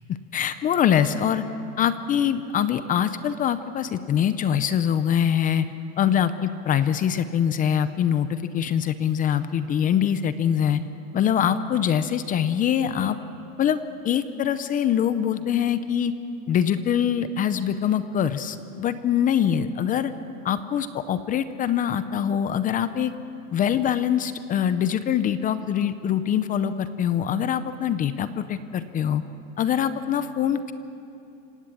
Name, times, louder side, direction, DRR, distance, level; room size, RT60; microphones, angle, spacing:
voice 1, 0.3-1.4 1.8-5.7 6.0-10.8 11.1-13.2 13.6-16.1 16.5-20.1 20.4-23.1 23.5-29.2 29.6-30.7, left 9 dB, 20° left, 12 dB, 0.6 m, -23 dB
26.5 x 17.5 x 8.5 m, 2.7 s
supercardioid pair, 150°, 40 cm